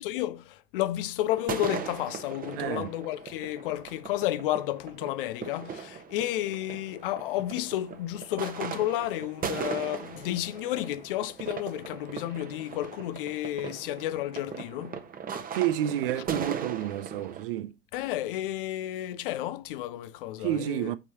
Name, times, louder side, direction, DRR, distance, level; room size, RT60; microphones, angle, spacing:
voice 1, 0.0-15.0 17.9-20.9, left 14 dB, 60° left, 0.6 m, -32 dB
sound 1, 1.4-17.4, right 6 dB, 30° right, 1.1 m, -39 dB
voice 2, 2.6-2.9 15.5-17.8 20.4-21.0, right 12 dB, 65° right, 0.8 m, -29 dB
8.7 x 4.6 x 2.9 m
figure-of-eight pair, 70°, 30 cm